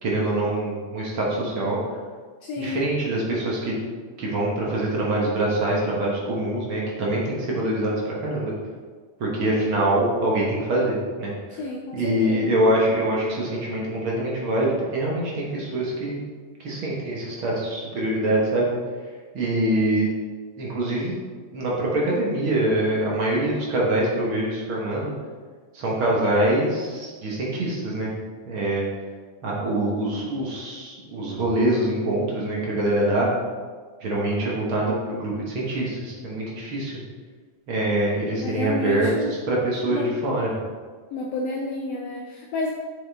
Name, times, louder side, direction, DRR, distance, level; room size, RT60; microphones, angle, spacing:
voice 1, 0.0-2.0 2.6-3.7 4.2-8.5 9.2-11.6 11.9-16.2 16.6-18.7 19.3-20.1 20.6-21.2 21.5-25.1 25.7-28.1 28.5-28.8 29.4-33.3 34.0-37.0 37.7-40.5, right 1 dB, 50° right, -4 dB, 1.7 m, -24 dB
voice 2, 2.4-2.8 11.5-12.5 38.4-39.4 39.9-40.1 41.1-42.7, left 2 dB, 80° left, 0 dB, 1.4 m, -30 dB
7.8 x 6.2 x 3.5 m, 1.5 s
omnidirectional pair, 3.7 m